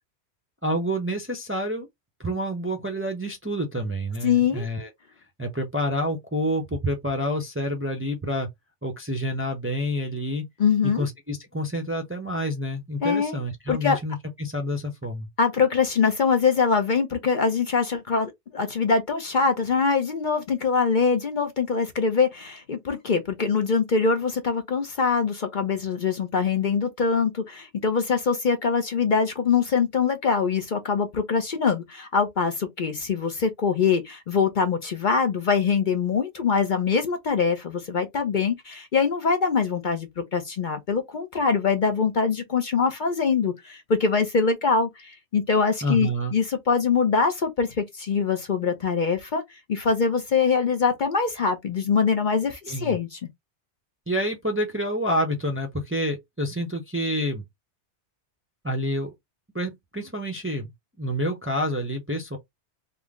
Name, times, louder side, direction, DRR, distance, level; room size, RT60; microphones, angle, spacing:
voice 1, 0.6-1.9 2.2-4.9 5.4-8.5 8.8-10.4 10.8-15.3 45.8-46.3 52.7-53.0 54.1-57.4 58.6-59.1 59.5-60.7 61.0-62.4, equal, 15° right, 0.6 m, -28 dB
voice 2, 4.2-4.7 10.6-11.1 13.0-13.4 13.7-14.0 15.4-53.2, left 5 dB, 50° left, 0.7 m, -23 dB
3.7 x 2.1 x 3.5 m
omnidirectional pair, 1.2 m